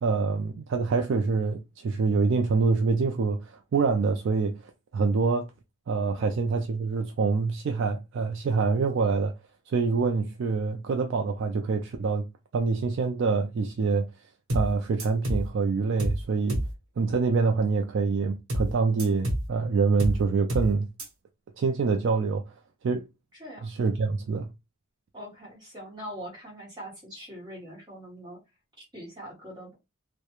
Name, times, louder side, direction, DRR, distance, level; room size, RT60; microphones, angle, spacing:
voice 1, 0.0-4.6 4.9-5.5 5.9-9.3 9.7-12.3 12.5-14.1 14.5-16.6 17.0-20.9 21.6-22.5 22.8-23.1 23.6-24.5, right 4 dB, 60° right, 0.3 m, -25 dB
sound 1, 14.5-14.7 15.0-15.5 16.0-16.2 16.5-16.7 18.5-18.7 19.0-19.5 20.0-20.2 20.5-20.7 21.0-21.1, equal, 75° right, 0.9 m, -28 dB
voice 2, 23.4-23.7 25.1-28.4 28.8-29.7, equal, 20° right, 1.2 m, -42 dB
2.3 x 2.1 x 2.9 m
head